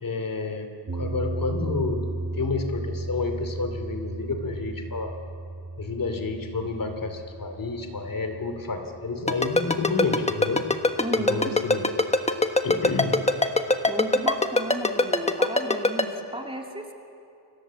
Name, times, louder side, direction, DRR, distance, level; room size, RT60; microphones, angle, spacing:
voice 1, 0.0-2.0 2.3-5.1 5.8-10.7 11.3-11.8 12.6-13.2, left 4 dB, 50° left, 6 dB, 2.8 m, -30 dB
sound 1, 0.9-11.1, right 2 dB, 35° right, 1.6 m, -35 dB
Ringtone, 9.3-16.0, left 2 dB, 15° left, 1.3 m, -20 dB
voice 2, 11.0-11.5 13.9-16.9, right 1 dB, 10° right, 2 dB, 2.4 m, -33 dB
30.0 x 25.0 x 7.6 m, 2.6 s
wide cardioid pair, 160°, 43 cm